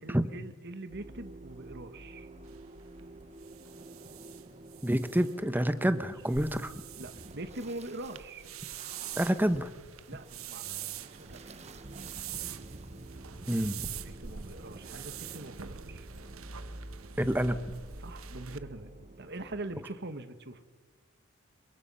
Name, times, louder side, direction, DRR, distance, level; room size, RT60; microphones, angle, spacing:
voice 1, 0.0-2.3 5.6-6.1 7.0-8.4 10.1-11.4 14.0-16.1 18.0-18.9 19.2-20.6, right 2 dB, 55° right, 10 dB, 1.7 m, -43 dB
sound 1, 0.9-19.8, right 1 dB, 30° right, 1.2 m, -49 dB
sound 2, 2.4-18.6, right 9 dB, 80° right, 1.1 m, -45 dB
voice 2, 4.8-6.7 9.2-9.7 13.5-13.8 17.2-17.6, equal, 10° right, 12 dB, 1.1 m, -28 dB
28.5 x 23.5 x 5.7 m, 1.4 s
head